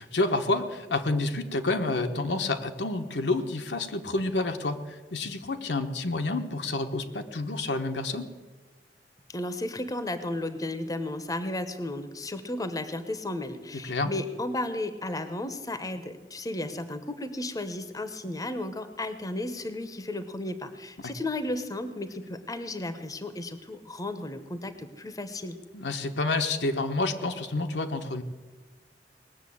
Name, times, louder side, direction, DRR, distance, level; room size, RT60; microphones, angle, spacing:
voice 1, 0.0-8.3 13.7-14.1 25.7-28.2, left 2 dB, 75° left, 6 dB, 1.1 m, -29 dB
voice 2, 9.3-25.6, left 1 dB, 20° left, 10 dB, 0.8 m, -34 dB
19.5 x 7.1 x 8.5 m, 1.2 s
head